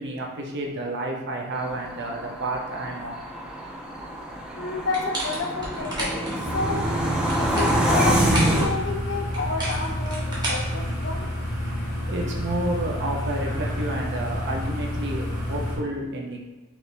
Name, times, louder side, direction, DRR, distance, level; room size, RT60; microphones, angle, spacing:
voice 1, 0.0-3.2 12.1-16.4, right 1 dB, 55° right, 0 dB, 0.7 m, -30 dB
sound 1, 1.5-8.7, right 1 dB, 5° right, 0.4 m, -26 dB
voice 2, 4.6-6.8 7.4-11.3, left 3 dB, 55° left, 3 dB, 0.6 m, -30 dB
sound 2, 4.9-6.4 7.1-8.6 9.3-11.3, right 1 dB, 20° right, 1.1 m, -32 dB
sound 3, 6.4-15.8, left 1 dB, 40° right, 1.4 m, -29 dB
4.5 x 2.7 x 3.3 m, 1.1 s
head